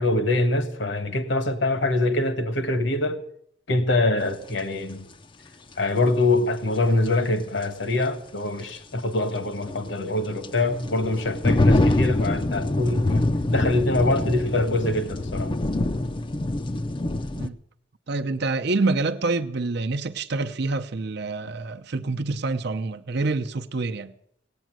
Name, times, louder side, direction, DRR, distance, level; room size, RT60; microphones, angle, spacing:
voice 1, 0.0-3.2 3.7-5.1 5.8-15.5, left 2 dB, 65° left, 1.5 m, -24 dB
sound 1, 4.5-4.6 7.1-7.2 7.6-7.7 9.3-17.5, left 2 dB, 25° left, 0.5 m, -25 dB
voice 2, 18.1-24.1, right 3 dB, 55° right, 0.7 m, -27 dB
16.5 x 9.1 x 7.6 m
head